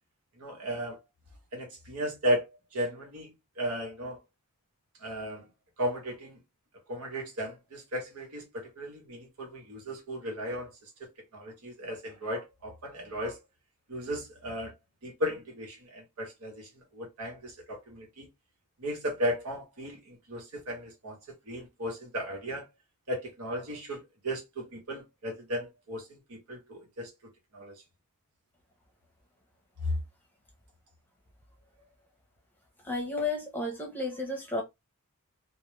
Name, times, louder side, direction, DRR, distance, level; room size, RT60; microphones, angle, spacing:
voice 1, 0.4-1.0 1.5-4.2 5.0-5.5 5.8-6.4 6.9-10.9 11.3-13.4 13.9-14.7 15.0-18.3 18.8-21.2 21.5-22.7 23.1-27.1 27.5-27.7 29.8-30.0, equal, 90° right, 1.1 m, -35 dB
voice 2, 32.8-34.6, left 2 dB, 10° left, 0.7 m, -32 dB
2.3 x 2.2 x 3.1 m
head